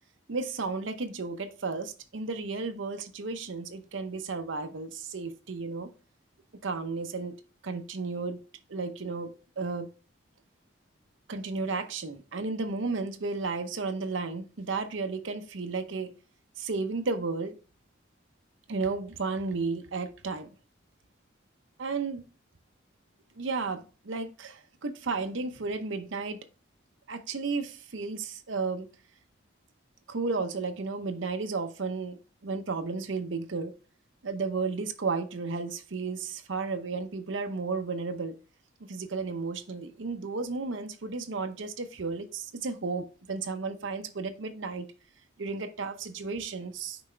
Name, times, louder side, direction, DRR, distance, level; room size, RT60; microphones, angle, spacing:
voice 1, 0.3-5.9 6.6-7.3 7.6-8.4 8.7-9.9 11.3-16.1 16.6-17.5 18.7-20.5 21.8-22.2 23.4-26.4 27.1-28.9 30.1-33.7 34.2-38.3 38.8-44.9 45.4-47.0, right 4 dB, 80° right, 0.7 m, -33 dB
6.0 x 4.7 x 3.3 m
head